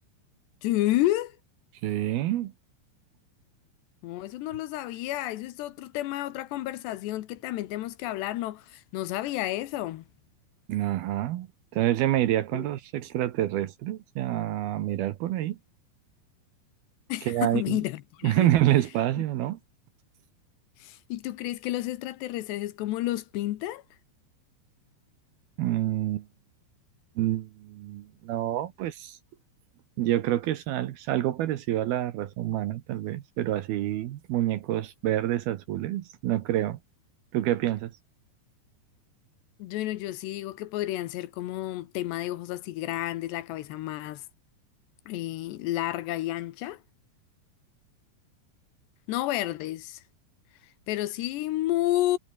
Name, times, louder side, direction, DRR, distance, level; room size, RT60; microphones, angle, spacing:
voice 1, 0.6-1.4 4.0-10.0 12.5-12.7 17.1-18.5 20.8-23.8 39.6-44.2 45.1-46.8 49.1-50.0 50.9-52.2, left 15 dB, 75° left, 3.1 m, -31 dB
voice 2, 1.8-2.5 10.7-11.5 11.7-15.6 17.2-17.8 18.2-19.6 25.6-26.3 27.2-29.2 30.0-36.8 37.3-37.9, right 13 dB, 70° right, 2.7 m, -27 dB
omnidirectional pair, 5.2 m